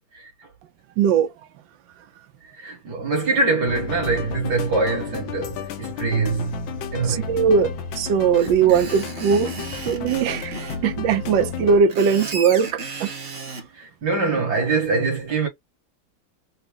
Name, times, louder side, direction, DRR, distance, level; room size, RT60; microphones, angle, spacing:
voice 1, 1.0-1.3 7.1-9.5 9.9-10.5 10.8-13.1, right 6 dB, 70° right, 1.4 m, -20 dB
voice 2, 2.6-6.6 6.9-7.3 13.8-15.5, right 3 dB, 55° right, 1.9 m, -23 dB
sound 1, 3.7-11.8, left 7 dB, 80° left, 1.4 m, -33 dB
Screech, 8.3-10.8 11.7-13.6, right 4 dB, 35° right, 1.0 m, -34 dB
4.2 x 2.1 x 3.5 m
omnidirectional pair, 2.2 m